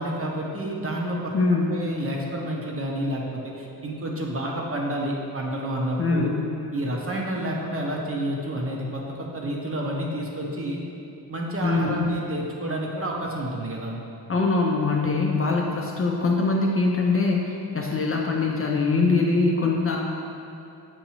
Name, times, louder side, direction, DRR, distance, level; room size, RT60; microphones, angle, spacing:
voice 1, 0.0-1.4 1.7-6.3 6.7-10.8 11.3-14.0, right 1 dB, 35° right, -2 dB, 0.7 m, -29 dB
voice 2, 1.3-1.8 6.0-6.4 11.6-12.0 14.3-17.4 17.7-20.0, left 3 dB, 35° left, -1 dB, 0.4 m, -22 dB
7.0 x 2.6 x 2.9 m, 2.7 s
cardioid pair, 80°, 42 cm